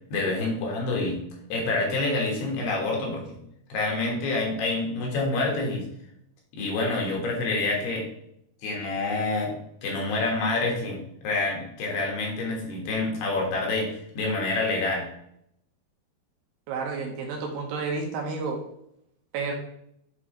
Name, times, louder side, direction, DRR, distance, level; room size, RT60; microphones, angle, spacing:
voice 1, 0.1-1.2 1.5-3.4 3.7-5.9 6.5-8.1 8.6-9.5 9.8-15.1, left 2 dB, 75° left, -1 dB, 3.5 m, -27 dB
voice 2, 16.7-18.6 19.3-19.5, right 4 dB, 75° right, 1 dB, 3.0 m, -30 dB
8.4 x 4.5 x 3.0 m, 0.74 s
omnidirectional pair, 4.9 m